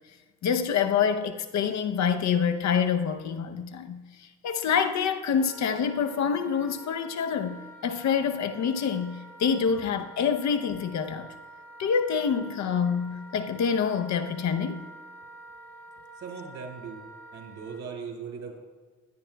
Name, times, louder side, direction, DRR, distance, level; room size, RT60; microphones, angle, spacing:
voice 1, 0.4-11.3 11.8-14.9, left 7 dB, 65° left, 0.8 m, -27 dB
Wind instrument woodwind instrument, 5.4-17.8, right 1 dB, 5° left, 1.9 m, -48 dB
voice 2, 16.2-17.0 17.3-18.6, right 5 dB, 65° right, 3.0 m, -39 dB
16.5 x 10.5 x 2.3 m
cardioid pair, 90°, 30 cm